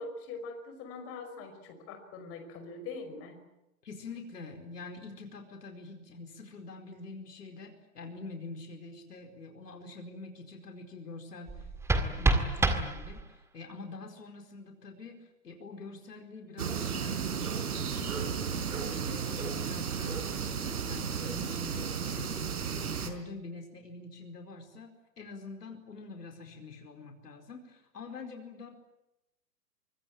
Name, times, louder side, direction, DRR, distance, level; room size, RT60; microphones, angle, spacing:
voice 1, 0.0-3.4, left 3 dB, 25° left, 7 dB, 5.6 m, -42 dB
voice 2, 3.8-18.1 18.5-22.3 22.7-24.9 25.2-28.7, left 3 dB, 70° left, 6 dB, 4.7 m, -45 dB
sound 1, 11.5-13.5, right 2 dB, 5° right, 1.9 m, -28 dB
sound 2, 16.6-23.1, right 6 dB, 60° right, 4.5 m, -34 dB
24.5 x 24.5 x 9.0 m, 0.89 s
figure-of-eight pair, 120°, 50 cm